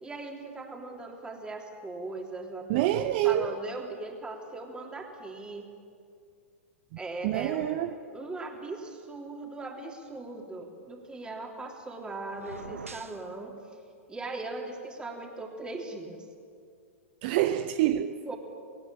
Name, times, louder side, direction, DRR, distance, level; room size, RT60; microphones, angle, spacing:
voice 1, 0.0-5.7 7.0-7.7 8.1-13.6 14.1-16.3 18.2-18.4, right 2 dB, 10° right, 3.3 m, -39 dB
voice 2, 2.7-3.6 7.2-7.9 17.2-18.3, right 13 dB, 45° right, 0.7 m, -27 dB
sound 1, 12.3-13.3, right 4 dB, 80° right, 1.1 m, -43 dB
20.0 x 18.0 x 8.8 m
figure-of-eight pair, 105°, 7 cm